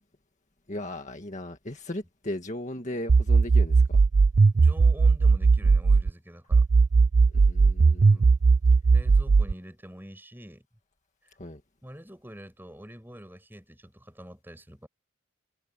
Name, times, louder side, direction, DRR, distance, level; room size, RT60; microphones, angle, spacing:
voice 1, 0.7-4.0 7.3-8.2 11.4-11.6, left 1 dB, 35° left, 1.9 m, -37 dB
sound 1, 3.1-6.1 6.5-9.5, right 4 dB, 40° right, 0.4 m, -18 dB
voice 2, 4.5-6.7 8.0-8.3 8.9-10.7 11.2-11.4 11.8-14.9, equal, 10° right, 6.1 m, -46 dB
head